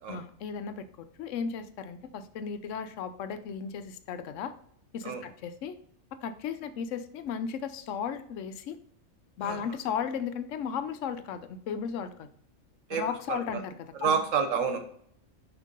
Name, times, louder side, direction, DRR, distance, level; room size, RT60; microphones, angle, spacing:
voice 1, 0.1-4.5 4.9-5.8 6.2-8.8 9.4-12.3 12.9-14.2, left 7 dB, 75° left, 11 dB, 0.9 m, -35 dB
voice 2, 12.9-13.6 14.0-14.8, right 6 dB, 75° right, 6 dB, 1.2 m, -29 dB
6.3 x 3.0 x 5.2 m, 0.65 s
omnidirectional pair, 1.4 m